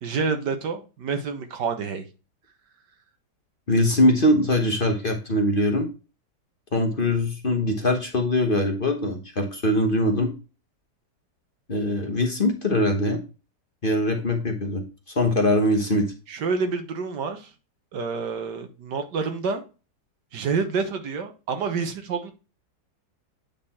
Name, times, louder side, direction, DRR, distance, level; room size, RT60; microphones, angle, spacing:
voice 1, 0.0-2.0 16.3-17.5 17.9-19.6 20.3-22.3, right 5 dB, 75° right, 7 dB, 1.7 m, -28 dB
voice 2, 3.7-5.9 6.7-10.3 11.7-13.2 13.8-14.8 15.2-16.1, left 1 dB, 35° left, 3 dB, 1.1 m, -22 dB
8.8 x 4.0 x 4.2 m, 0.32 s
omnidirectional pair, 1.8 m